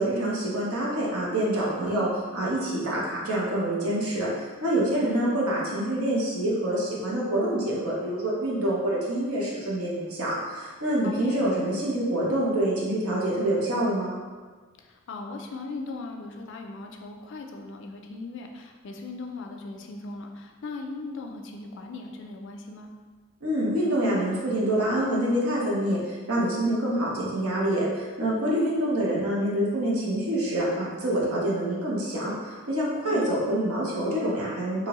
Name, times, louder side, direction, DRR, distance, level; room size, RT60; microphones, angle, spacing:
voice 1, 0.0-14.1 23.4-34.9, right 1 dB, 80° right, -5 dB, 0.8 m, -26 dB
voice 2, 4.9-5.4 11.0-11.4 14.8-22.9 28.4-28.7 33.0-33.4, left 3 dB, 55° left, 3 dB, 0.3 m, -38 dB
2.8 x 2.6 x 2.9 m, 1.5 s
head